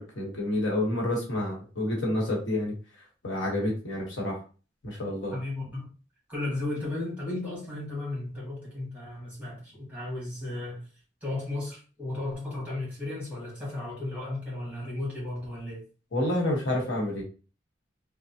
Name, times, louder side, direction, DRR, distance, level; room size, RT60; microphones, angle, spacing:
voice 1, 0.0-2.7 3.2-4.4 4.8-5.3 16.1-17.2, left 1 dB, 70° left, 1.1 m, -29 dB
voice 2, 5.3-5.8 6.3-10.8 11.2-15.8, left 2 dB, 10° right, 1.4 m, -34 dB
3.3 x 2.1 x 2.7 m
head